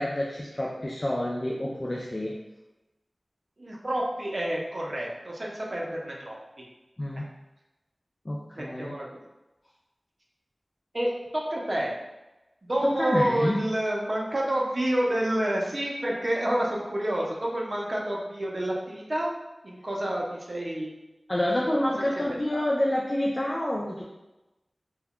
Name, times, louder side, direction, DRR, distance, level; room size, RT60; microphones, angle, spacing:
voice 1, 0.0-2.4 7.0-7.2 8.3-9.0 12.8-13.6 21.3-24.0, left 1 dB, 35° left, -3 dB, 0.3 m, -28 dB
voice 2, 3.6-6.4 7.1-7.2 8.6-9.2 10.9-11.9 12.6-19.3 19.6-20.9 21.5-21.6 22.2-22.3 22.5-22.6, right 1 dB, 50° right, -2 dB, 0.6 m, -29 dB
2.2 x 2.2 x 3.5 m, 1.0 s
wide cardioid pair, 60°, 0 cm